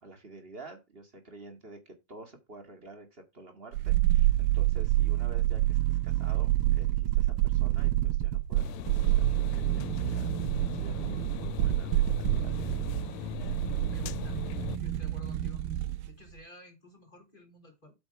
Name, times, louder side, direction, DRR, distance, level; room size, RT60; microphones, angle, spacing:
voice 1, 0.0-10.3 10.7-12.8, right 2 dB, 50° right, 0.6 m, -49 dB
sound 1, 3.7-16.1 16.4-16.5, right 15 dB, 75° right, 2.4 m, -28 dB
sound 2, 8.6-14.8, left 9 dB, 85° left, 2.8 m, -39 dB
voice 2, 13.9-14.4 14.8-15.6 16.0-17.9, left 2 dB, 10° left, 4.1 m, -51 dB
8.5 x 5.9 x 5.9 m
omnidirectional pair, 4.6 m